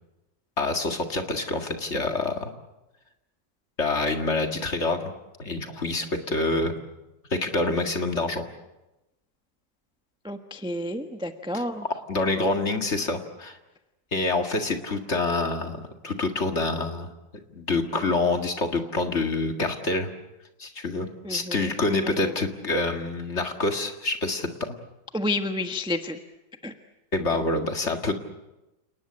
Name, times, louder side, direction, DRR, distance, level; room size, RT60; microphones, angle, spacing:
voice 1, 0.6-2.5 3.8-5.1 5.4-6.7 7.3-8.4 11.5-11.6 12.1-13.6 14.1-17.1 17.5-20.1 20.6-24.8 27.1-28.2, left 2 dB, 40° left, 5 dB, 2.2 m, -26 dB
voice 2, 10.2-11.9 21.2-21.8 22.0-22.3 25.1-26.2 26.6-26.7, left 1 dB, 5° right, 6 dB, 1.0 m, -30 dB
29.0 x 19.5 x 8.7 m, 1.0 s
omnidirectional pair, 2.0 m